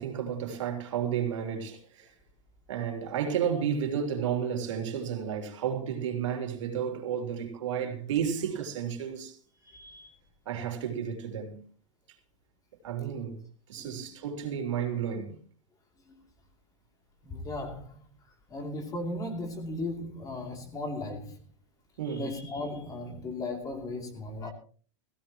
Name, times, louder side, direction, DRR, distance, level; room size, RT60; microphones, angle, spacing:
voice 1, 0.0-2.1 2.7-9.4 10.4-11.6 12.8-13.4 13.7-15.4 22.0-22.3, right 8 dB, 85° right, 3.2 m, -32 dB
voice 2, 9.7-10.1 13.8-14.1 16.1-16.2 17.2-18.0 18.5-21.4 22.2-24.5, left 2 dB, 20° left, 3.0 m, -36 dB
19.0 x 16.0 x 3.0 m
supercardioid pair, 140°, 16 cm